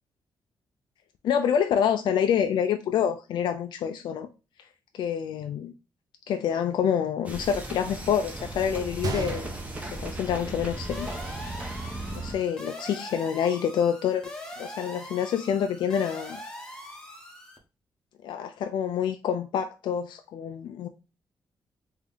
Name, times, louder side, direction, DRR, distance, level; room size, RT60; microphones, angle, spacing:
voice 1, 1.2-4.3 4.9-5.7 6.3-9.5 9.8-11.1 12.1-14.3 14.6-16.4 18.2-20.9, left 8 dB, 80° left, 0.4 m, -27 dB
sound 1, 7.2-12.3, right 2 dB, 20° right, 0.8 m, -36 dB
Gunshot gunfire, 9.0-11.0 11.3-11.4 12.1-12.3, right 3 dB, 55° right, 0.6 m, -35 dB
sound 2, 10.9-17.6, left 1 dB, 10° left, 0.9 m, -42 dB
3.4 x 2.7 x 3.5 m
cardioid pair, 125°, 8 cm